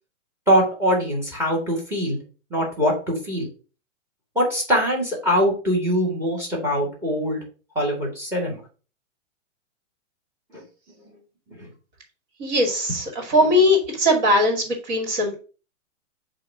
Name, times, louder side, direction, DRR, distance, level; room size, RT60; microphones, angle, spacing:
voice 1, 0.5-2.2 2.5-3.5 4.4-7.4 7.8-8.6 10.5-10.6 11.5-11.7, equal, 5° right, 1 dB, 2.2 m, -23 dB
voice 2, 12.4-15.4, left 1 dB, 35° right, 3 dB, 2.4 m, -20 dB
7.7 x 2.9 x 6.0 m, 0.36 s
hypercardioid pair, 165°, 38 cm